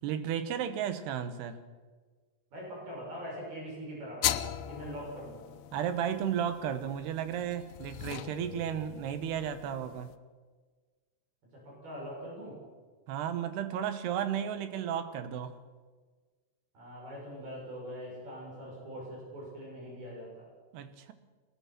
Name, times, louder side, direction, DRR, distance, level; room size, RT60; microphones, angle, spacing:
voice 1, 0.0-1.6 5.7-10.1 13.1-15.6 20.7-21.1, right 9 dB, 90° right, 10 dB, 3.4 m, -34 dB
voice 2, 2.5-4.2 4.7-5.4 11.5-12.6 16.7-20.5, equal, 70° right, -4 dB, 9.3 m, -42 dB
sound 1, 4.2-10.1, left 12 dB, 75° left, 2.5 m, -38 dB
23.5 x 20.0 x 6.1 m, 1.4 s
omnidirectional pair, 4.6 m